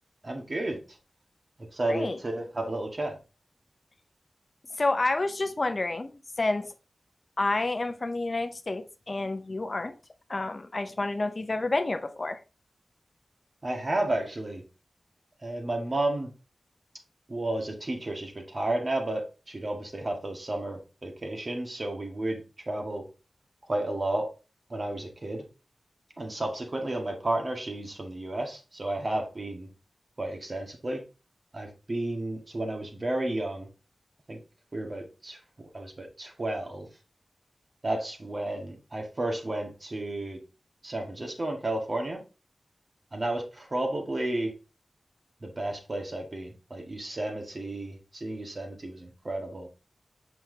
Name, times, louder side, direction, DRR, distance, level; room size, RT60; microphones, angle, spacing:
voice 1, 0.2-1.0 1.7-3.2 13.6-14.6 15.4-16.3 17.3-23.0 23.7-24.3 24.7-25.4 26.2-29.7 30.2-31.0 31.5-33.7 34.3-34.4 34.7-35.4 35.7-36.9 37.8-40.4 40.8-42.2 43.1-44.5 45.4-49.7, right 1 dB, 45° right, 2 dB, 1.7 m, -32 dB
voice 2, 4.8-6.7 7.4-9.9 10.3-12.4, left 2 dB, 45° left, 8 dB, 0.6 m, -29 dB
5.9 x 5.7 x 2.8 m, 0.31 s
wide cardioid pair, 65°, 0 cm